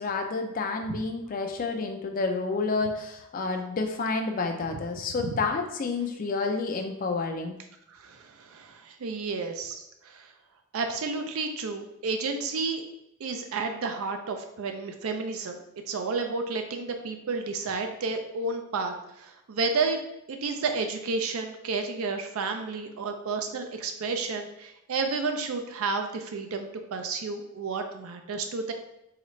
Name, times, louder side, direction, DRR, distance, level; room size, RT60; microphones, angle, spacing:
voice 1, 0.0-7.6, left 3 dB, 40° left, 4 dB, 0.4 m, -29 dB
voice 2, 7.9-10.3 10.7-12.8 13.2-20.0 20.3-28.7, right 4 dB, 75° right, 5 dB, 0.4 m, -31 dB
3.9 x 3.2 x 3.1 m, 0.86 s
head